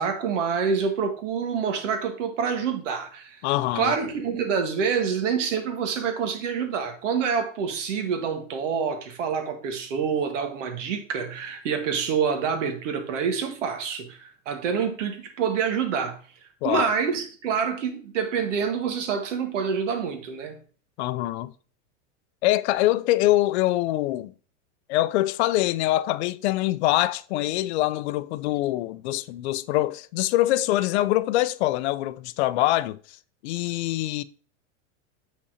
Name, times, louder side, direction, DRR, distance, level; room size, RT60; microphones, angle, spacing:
voice 1, 0.0-3.4 3.7-16.2 16.6-20.6, right 6 dB, 80° right, 1.6 m, -27 dB
voice 2, 3.4-4.0 16.6-16.9 21.0-21.5 22.4-24.3 24.9-33.0 33.4-34.2, left 16 dB, 65° left, 0.5 m, -24 dB
6.9 x 5.7 x 2.7 m
supercardioid pair, 135°, 37 cm